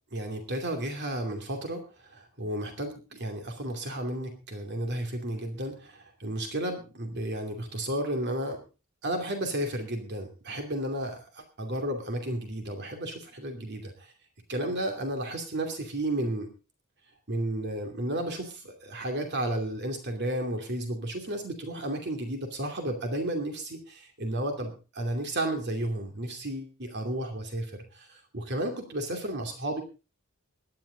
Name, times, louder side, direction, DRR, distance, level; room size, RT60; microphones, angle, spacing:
voice 1, 0.1-8.6 9.0-14.1 14.5-16.5 17.3-29.8, right 1 dB, 55° right, 4 dB, 2.6 m, -33 dB
18.0 x 11.5 x 3.9 m, 0.32 s
head